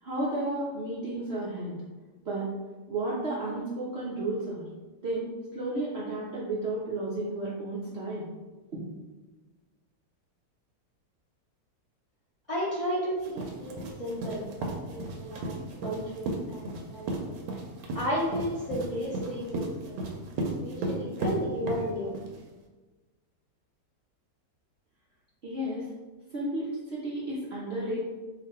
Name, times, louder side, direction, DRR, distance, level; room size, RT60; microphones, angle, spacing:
voice 1, 0.0-1.8 2.2-2.5 2.9-4.6 5.0-8.3 8.7-8.8 25.4-25.9 26.3-28.0, right 2 dB, 65° right, -6 dB, 0.6 m, -32 dB
voice 2, 12.5-17.3 17.9-19.9 20.6-22.1, equal, 45° left, -9 dB, 0.4 m, -33 dB
sound 1, 13.2-22.4, right 2 dB, 85° right, 1.2 m, -34 dB
2.9 x 2.5 x 4.3 m, 1.2 s
omnidirectional pair, 1.8 m